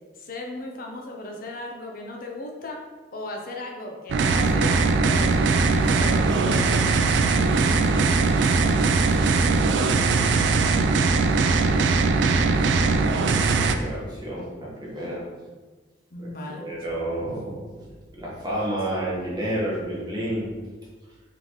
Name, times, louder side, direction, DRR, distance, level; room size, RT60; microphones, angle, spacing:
voice 1, 0.2-2.8 3.1-7.1 16.1-16.7, left 1 dB, 50° left, 1 dB, 0.6 m, -36 dB
sound 1, 4.1-13.7, right 4 dB, 75° right, 0.3 m, -20 dB
voice 2, 11.5-11.8 13.4-15.2 16.2-17.7 18.1-20.5, right 1 dB, 25° right, -6 dB, 1.1 m, -30 dB
3.8 x 3.7 x 3.1 m, 1.3 s
head